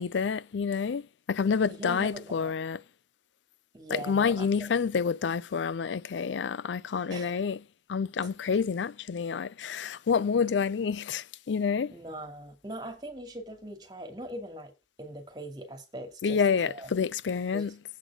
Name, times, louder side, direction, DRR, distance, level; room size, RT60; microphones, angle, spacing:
voice 1, 0.0-2.8 3.9-11.9 16.2-17.8, left 6 dB, 80° left, 0.4 m, -28 dB
voice 2, 1.7-2.5 3.7-4.7 7.1-7.4 11.9-14.7 15.0-16.9 17.5-17.8, right 1 dB, 25° right, 2.4 m, -41 dB
8.2 x 6.2 x 6.2 m
head